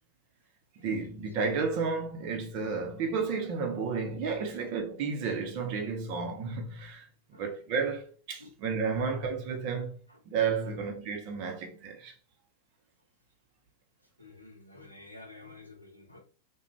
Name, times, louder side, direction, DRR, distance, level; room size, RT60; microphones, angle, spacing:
voice 1, 0.8-10.0 10.3-12.1, right 5 dB, 45° right, 0.7 m, -32 dB
voice 2, 14.0-16.2, left 2 dB, 90° left, 0.7 m, -51 dB
2.4 x 2.2 x 3.0 m
figure-of-eight pair, 90°, 0 cm